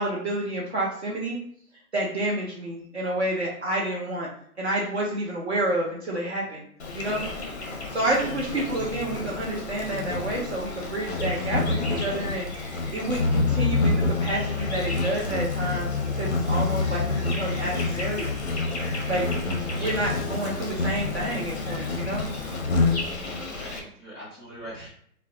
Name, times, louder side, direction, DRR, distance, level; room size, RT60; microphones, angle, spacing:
voice 1, 0.0-1.4 1.9-4.3 4.6-6.6 6.9-7.2 7.9-12.5 12.9-18.3 19.1-19.3 19.7-22.3, right 1 dB, 50° right, -3 dB, 0.5 m, -29 dB
Insect, 6.8-23.8, left 3 dB, 50° left, 0.5 m, -28 dB
voice 2, 23.1-24.9, equal, 5° right, -13 dB, 0.7 m, -41 dB
2.3 x 2.0 x 2.7 m, 0.63 s
hypercardioid pair, 175°, 45 cm